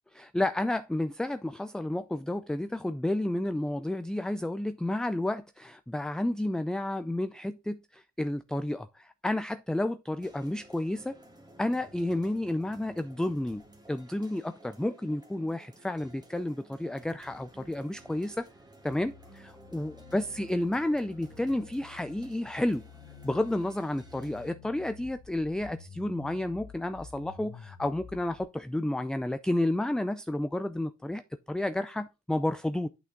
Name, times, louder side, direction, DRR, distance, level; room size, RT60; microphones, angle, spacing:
voice 1, 0.2-11.2 11.6-13.6 13.9-18.5 18.8-22.8 23.2-31.2 31.5-32.9, left 1 dB, ahead, 0.3 m, -31 dB
sound 1, 10.2-24.5, right 1 dB, 15° right, 1.6 m, -55 dB
sound 2, 18.9-28.4, left 6 dB, 70° left, 1.6 m, -51 dB
8.3 x 6.1 x 3.7 m
cardioid pair, 90°, 30 cm